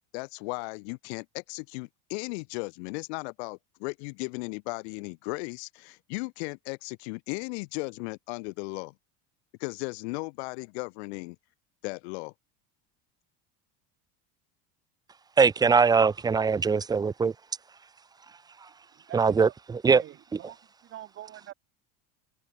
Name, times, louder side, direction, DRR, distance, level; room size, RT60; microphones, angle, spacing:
voice 1, 0.1-8.9 9.6-11.4 11.8-12.3, left 29 dB, 75° left, 2.7 m, -36 dB
voice 2, 15.4-17.3 19.1-19.5 19.8-20.0, right 5 dB, 10° right, 1.0 m, -21 dB
voice 3, 19.1-19.5 19.9-21.5, right 13 dB, 40° right, 7.6 m, -44 dB
cardioid pair, 160°, 33 cm